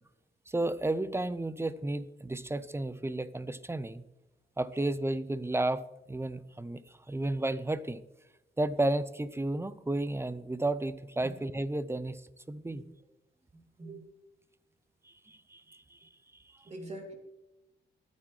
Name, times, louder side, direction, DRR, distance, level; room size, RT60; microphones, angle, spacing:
voice 1, 0.5-4.0 4.6-8.0 8.6-12.2 12.5-12.8 15.1-16.1 16.5-16.6, right 2 dB, 15° right, 16 dB, 0.6 m, -33 dB
voice 2, 13.5-14.1 16.6-17.2, right 2 dB, 35° right, 2 dB, 2.7 m, -44 dB
20.0 x 9.5 x 3.3 m, 0.98 s
cardioid pair, 95°, 20 cm